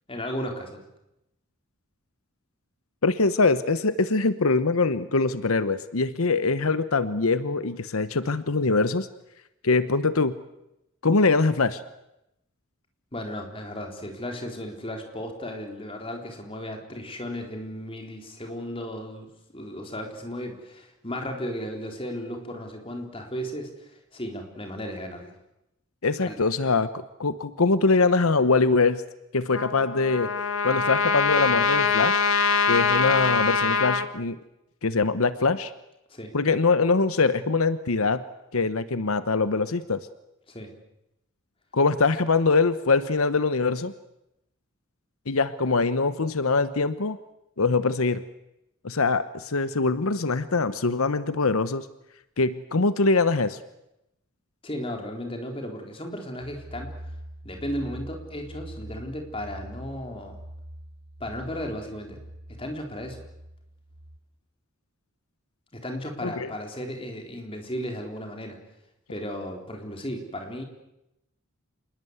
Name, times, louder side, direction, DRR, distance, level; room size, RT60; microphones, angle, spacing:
voice 1, 0.1-0.8 13.1-25.3 26.2-26.4 36.1-36.3 40.5-40.7 54.6-56.9 57.4-60.4 61.2-62.2 62.5-63.2 65.7-68.6 69.1-70.6, equal, 25° left, 3 dB, 4.0 m, -35 dB
voice 2, 3.0-9.1 9.6-10.4 11.0-11.8 26.0-29.0 29.3-30.3 30.6-32.2 32.7-34.4 34.8-35.7 36.3-38.2 38.5-40.0 41.7-43.9 45.3-47.2 47.6-48.2 48.8-51.9 52.4-53.6 66.2-66.5, left 3 dB, 85° left, 13 dB, 1.0 m, -23 dB
Trumpet, 29.5-34.1, left 4 dB, 70° left, 1.8 m, -23 dB
sound 1, 56.4-64.2, right 1 dB, 75° right, 2.9 m, -43 dB
27.5 x 20.5 x 8.1 m, 0.87 s
head